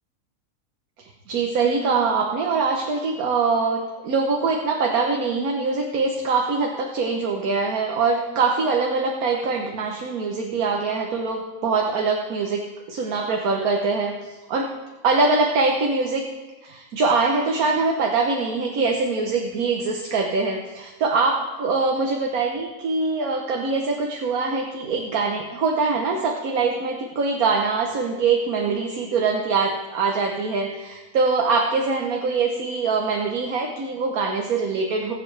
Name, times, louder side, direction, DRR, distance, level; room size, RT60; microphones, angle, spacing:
voice 1, 1.3-14.7 15.0-16.2 16.6-35.1, right 4 dB, 80° right, 1 dB, 1.5 m, -23 dB
20.0 x 7.5 x 3.3 m, 1.2 s
omnidirectional pair, 1.5 m